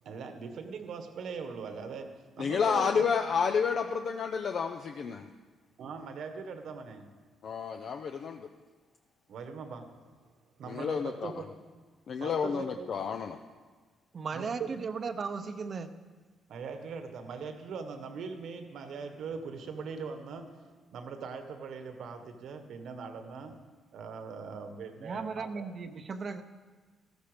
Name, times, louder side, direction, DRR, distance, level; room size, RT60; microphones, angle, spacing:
voice 1, 0.0-3.1 5.8-7.1 9.3-10.3 10.6-11.5 12.2-12.9 14.3-14.7 16.5-23.6 23.9-25.7, right 5 dB, 70° right, 7 dB, 1.4 m, -41 dB
voice 2, 2.4-5.3 7.4-8.5 10.7-11.3 12.1-13.4, left 6 dB, 60° left, 5 dB, 0.7 m, -30 dB
voice 3, 14.1-15.9 25.0-26.4, right 5 dB, 45° right, 8 dB, 0.8 m, -36 dB
13.5 x 13.5 x 5.1 m, 1.4 s
cardioid pair, 90°, 0 cm